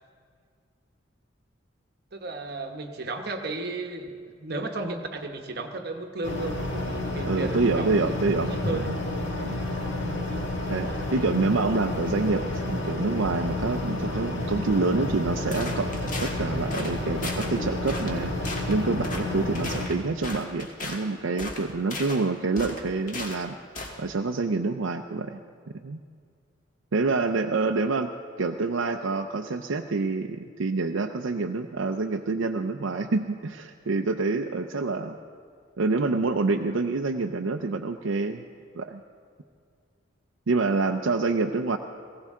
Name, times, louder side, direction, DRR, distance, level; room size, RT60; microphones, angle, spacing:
voice 1, 2.1-8.1 8.4-9.0 9.4-9.8 10.9-11.0, right 2 dB, 50° right, 4 dB, 1.0 m, -34 dB
sound 1, 6.2-19.9, left 1 dB, 65° left, 1.9 m, -30 dB
voice 2, 7.2-9.0 9.5-9.9 10.7-23.6 24.0-25.4 25.7-26.0 26.9-28.1 28.4-35.2 35.8-38.4 38.7-39.0 40.5-41.8, right 3 dB, 75° right, 4 dB, 0.5 m, -27 dB
sound 2, 15.5-16.4 16.7-17.0 17.2-17.5 17.9-18.2 18.4-18.7 19.0-19.2 19.6-21.0 21.4-22.2 22.6-23.4 23.8-24.0, left 2 dB, 40° left, 1.6 m, -36 dB
19.5 x 16.0 x 3.6 m, 2.1 s
head